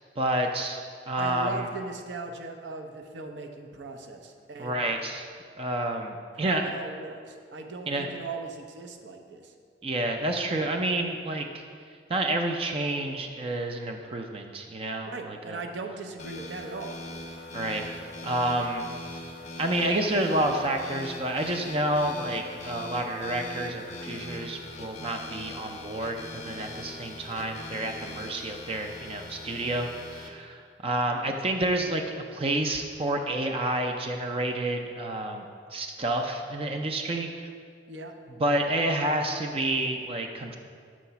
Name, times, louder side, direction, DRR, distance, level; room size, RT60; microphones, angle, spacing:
voice 1, 0.2-1.7 4.6-5.3 5.6-6.7 7.9-8.2 9.8-11.6 12.1-15.6 17.5-17.8 18.2-18.9 19.6-35.5 35.7-37.5 38.4-40.6, right 1 dB, 30° right, 3 dB, 0.4 m, -29 dB
voice 2, 1.2-4.8 6.3-9.5 15.1-16.9 37.9-38.1, right 3 dB, 80° right, 4 dB, 0.6 m, -39 dB
sound 1, 16.2-30.3, left 2 dB, 40° left, 0.6 m, -41 dB
6.3 x 4.0 x 5.7 m, 2.1 s
head